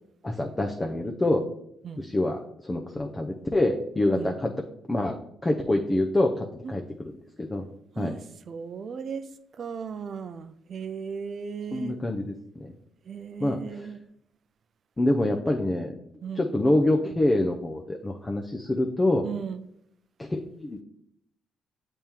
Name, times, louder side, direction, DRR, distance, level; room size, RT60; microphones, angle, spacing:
voice 1, 0.2-1.4 2.0-4.5 4.9-5.2 5.4-6.8 7.4-7.6 8.0-8.1 11.7-12.7 13.4-13.9 15.0-15.9 16.4-19.2 20.2-20.8, left 1 dB, 20° left, 2 dB, 0.6 m, -26 dB
voice 2, 8.5-9.3 9.6-12.0 13.1-14.0 16.2-16.5 19.2-19.6, right 6 dB, 55° right, 12 dB, 0.5 m, -36 dB
7.1 x 3.5 x 4.5 m, 0.76 s
cardioid pair, 90°, 0 cm